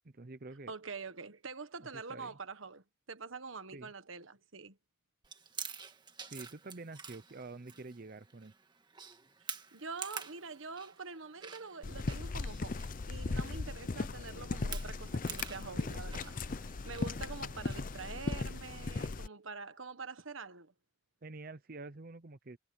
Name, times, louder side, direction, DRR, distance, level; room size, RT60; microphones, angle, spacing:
voice 1, 0.0-0.7 1.8-2.4 3.7-3.9 6.3-8.5 21.2-22.6, right 3 dB, 45° right, 0.7 m, -47 dB
voice 2, 0.7-4.8 9.7-16.4 16.8-20.7, right 4 dB, 80° right, 1.4 m, -45 dB
Chewing mastication, 5.2-18.4, right 6 dB, 20° right, 1.7 m, -49 dB
sound 1, 11.8-19.3, left 3 dB, 40° left, 0.5 m, -37 dB
head